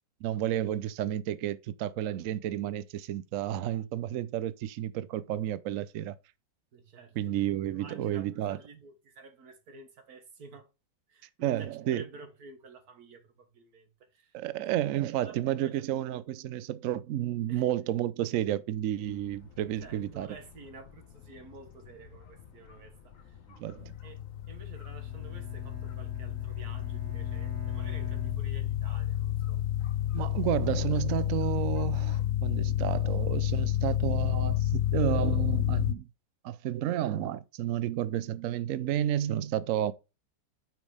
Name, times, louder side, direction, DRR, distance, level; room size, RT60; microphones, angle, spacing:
voice 1, 0.2-6.1 7.2-8.6 11.4-12.0 14.3-20.3 23.6-23.9 30.1-36.1 36.4-39.9, right 12 dB, 80° right, 0.7 m, -31 dB
voice 2, 6.7-7.4 7.6-10.7 11.1-14.4 15.2-15.8 17.5-17.7 19.8-23.4 24.0-24.2 24.5-29.6, right 4 dB, 55° right, 1.8 m, -51 dB
sound 1, 19.0-32.3, left 8 dB, 55° left, 1.1 m, -54 dB
sound 2, 23.8-35.9, left 12 dB, 80° left, 1.3 m, -30 dB
Bowed string instrument, 24.8-29.2, right 2 dB, 10° right, 0.8 m, -48 dB
6.3 x 5.2 x 4.8 m
omnidirectional pair, 2.0 m